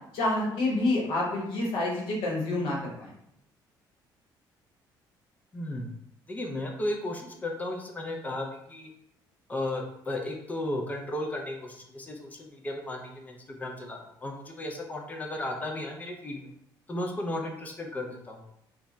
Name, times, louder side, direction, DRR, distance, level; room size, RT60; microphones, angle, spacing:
voice 1, 0.1-3.1, left 2 dB, 75° left, -3 dB, 1.0 m, -28 dB
voice 2, 5.5-6.0 6.3-8.9 9.5-16.5 16.9-18.4, left 1 dB, 20° left, 1 dB, 0.4 m, -35 dB
2.2 x 2.0 x 3.7 m, 0.76 s
cardioid pair, 140°, 8 cm